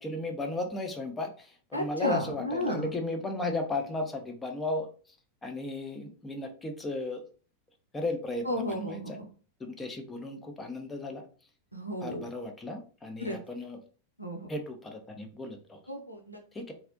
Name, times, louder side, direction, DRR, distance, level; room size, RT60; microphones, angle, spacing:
voice 1, 0.0-4.9 5.4-7.2 7.9-9.2 9.6-11.2 12.0-13.8 14.5-15.8 16.5-16.7, left 2 dB, 15° left, 4 dB, 0.5 m, -35 dB
voice 2, 1.7-2.9 8.4-9.3 11.7-12.2 13.2-13.4 14.2-14.5 15.9-16.4, equal, 90° right, 2 dB, 0.5 m, -33 dB
2.5 x 2.0 x 2.5 m, 0.39 s
figure-of-eight pair, 90°, 0 cm